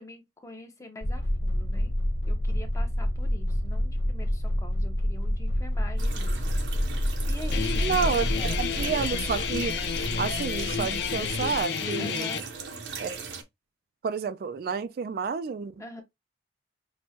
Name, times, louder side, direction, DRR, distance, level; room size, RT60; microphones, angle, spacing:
voice 1, 0.0-1.9 2.3-8.8 12.0-12.5 15.8-16.0, left 1 dB, 15° left, 0.8 m, -45 dB
sound 1, 1.0-11.6, equal, 90° left, 1.3 m, -28 dB
sound 2, 6.0-13.4, right 5 dB, 75° right, 0.8 m, -40 dB
Guitar, 7.5-12.4, left 7 dB, 60° left, 0.4 m, -31 dB
voice 2, 7.8-8.3 8.6-9.7 10.2-12.4 13.0-13.2 14.0-15.7, right 6 dB, 55° right, 0.3 m, -30 dB
6.0 x 2.2 x 2.8 m
head